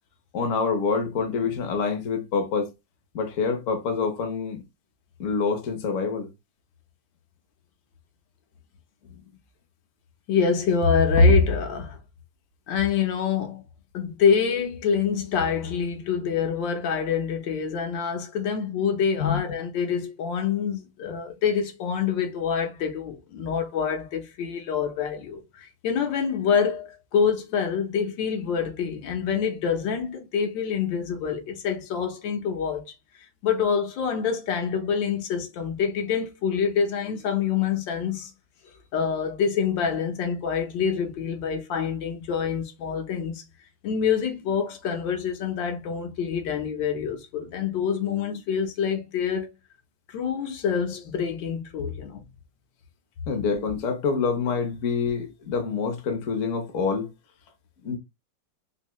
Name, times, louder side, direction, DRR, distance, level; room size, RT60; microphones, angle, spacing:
voice 1, 0.3-2.7 3.1-4.6 5.2-6.3 19.2-19.4 53.3-57.1 57.8-58.0, left 5 dB, 55° left, 1.0 m, -26 dB
voice 2, 10.3-12.0 12.7-13.6 13.9-32.9 33.4-38.3 38.9-43.4 43.8-49.5 50.1-52.2, left 6 dB, 80° left, 1.5 m, -26 dB
3.4 x 2.7 x 3.0 m
omnidirectional pair, 2.0 m